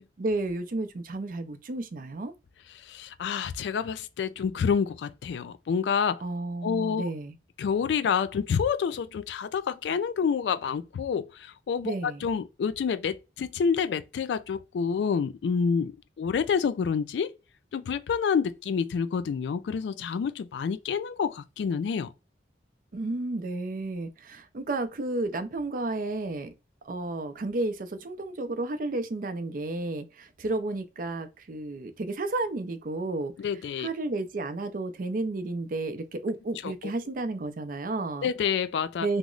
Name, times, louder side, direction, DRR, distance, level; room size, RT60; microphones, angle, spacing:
voice 1, 0.2-2.3 6.2-7.3 11.8-12.3 22.9-26.5 26.9-33.3 33.8-38.3 39.0-39.2, right 2 dB, 50° right, 0.4 m, -32 dB
voice 2, 2.8-6.2 6.6-7.1 7.6-15.9 16.2-17.3 17.7-22.1 33.4-33.9 36.6-36.7 38.2-39.1, left 6 dB, 75° left, 0.3 m, -28 dB
3.0 x 2.0 x 3.7 m
head